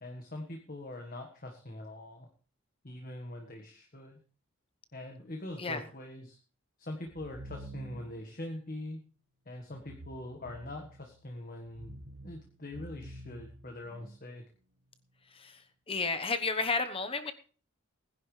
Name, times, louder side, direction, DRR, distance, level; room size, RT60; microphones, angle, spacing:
voice 1, 0.0-2.3 2.8-4.2 4.9-6.4 6.8-9.0 9.4-14.4, left 1 dB, 45° left, 3 dB, 1.5 m, -43 dB
sound 1, 7.1-8.3 9.7-11.1 11.6-14.2, right 1 dB, 90° right, 1.3 m, -48 dB
voice 2, 15.9-17.3, left 4 dB, 25° left, 9 dB, 1.0 m, -32 dB
20.0 x 10.5 x 3.3 m, 0.39 s
head